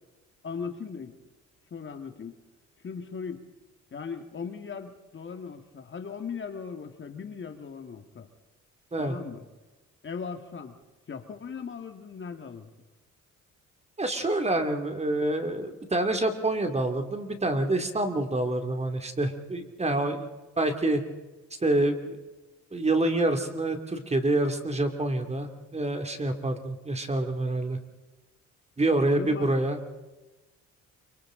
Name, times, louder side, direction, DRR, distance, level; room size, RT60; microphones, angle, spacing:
voice 1, 0.4-1.2 1.7-2.4 2.8-3.5 3.9-8.3 9.0-9.4 10.0-10.8 11.1-12.7 29.1-29.5, left 6 dB, 40° left, 6 dB, 1.9 m, -38 dB
voice 2, 14.0-20.3 20.6-21.0 21.6-22.2 22.7-27.8 28.8-29.8, right 2 dB, 20° right, 6 dB, 2.5 m, -27 dB
28.0 x 25.0 x 3.8 m, 1.2 s
cardioid pair, 90°, 30 cm